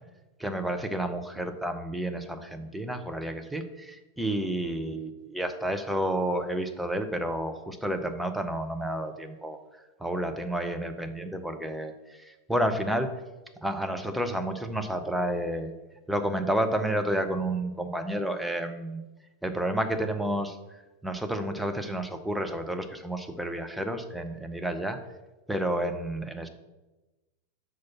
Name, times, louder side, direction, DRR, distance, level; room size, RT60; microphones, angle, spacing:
voice 1, 0.4-9.6 10.0-13.2 13.6-15.7 16.1-19.0 19.4-25.0 25.5-26.5, right 1 dB, 5° right, 6 dB, 0.7 m, -30 dB
6.2 x 4.3 x 6.0 m, 1.1 s
figure-of-eight pair, 90°, 0 cm